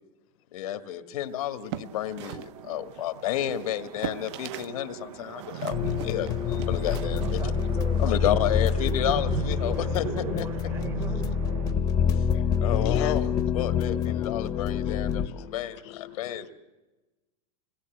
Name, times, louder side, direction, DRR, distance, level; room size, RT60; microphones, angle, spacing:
voice 1, 0.5-7.4 8.0-10.5 12.6-16.5, left 11 dB, 85° left, 8 dB, 1.9 m, -31 dB
sound 1, 1.5-4.8 5.0-8.2, right 13 dB, 50° right, 0.7 m, -41 dB
sound 2, 1.8-11.7, right 9 dB, 90° right, 0.8 m, -39 dB
voice 2, 5.6-6.0 6.4-6.6 8.0-8.1 9.2-9.3 11.1-11.2 11.7-13.4 14.2-14.3 14.6-14.9 15.2-16.5, left 12 dB, 50° left, 9 dB, 0.9 m, -43 dB
sound 3, 5.7-15.3, left 7 dB, 20° left, 0.8 m, -27 dB
voice 3, 6.9-11.3, right 5 dB, 15° right, 11 dB, 0.8 m, -42 dB
26.0 x 19.0 x 8.0 m, 1.1 s
supercardioid pair, 175°, 18 cm